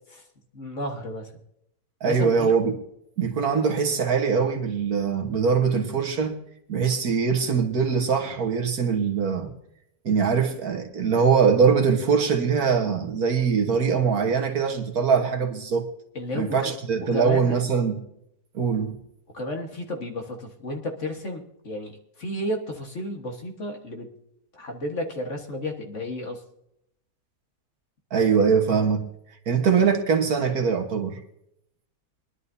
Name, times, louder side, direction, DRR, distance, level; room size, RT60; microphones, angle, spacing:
voice 1, 0.5-1.3 2.0-2.5 16.2-16.7 17.1-17.6 19.3-24.1 24.5-26.4, left 1 dB, 45° left, 1.8 m, -32 dB
voice 2, 2.0-2.8 3.2-6.4 6.7-9.5 10.0-15.9 16.3-18.0 18.5-18.9 28.1-29.0 29.5-31.2, right 6 dB, 65° right, 1.8 m, -22 dB
23.0 x 11.0 x 2.7 m
omnidirectional pair, 1.8 m